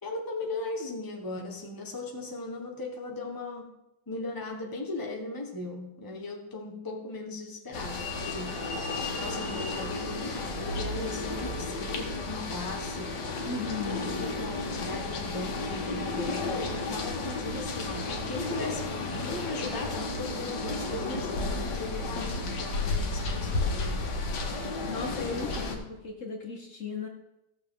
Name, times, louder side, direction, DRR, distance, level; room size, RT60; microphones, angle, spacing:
voice 1, 0.0-3.7 4.1-8.6 9.2-13.1 13.8-24.1, left 2 dB, 15° left, 0 dB, 1.2 m, -38 dB
sound 1, 7.7-25.8, left 3 dB, 75° left, 1.8 m, -33 dB
voice 2, 13.5-14.0 22.2-22.6 24.8-27.1, left 4 dB, 50° left, 1 dB, 1.4 m, -36 dB
16.0 x 6.6 x 3.7 m, 0.91 s
omnidirectional pair, 1.9 m